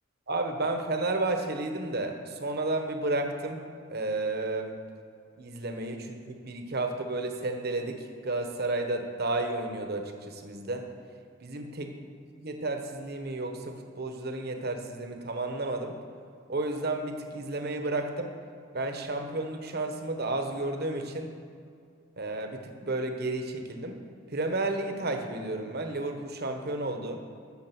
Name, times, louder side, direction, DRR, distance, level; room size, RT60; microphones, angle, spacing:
voice 1, 0.3-3.6 3.9-4.8 5.4-10.9 11.4-11.9 12.4-16.0 16.5-18.3 18.7-21.3 22.2-24.0 24.3-27.2, right 2 dB, 50° right, 5 dB, 1.2 m, -32 dB
13.5 x 7.5 x 6.0 m, 2.4 s
head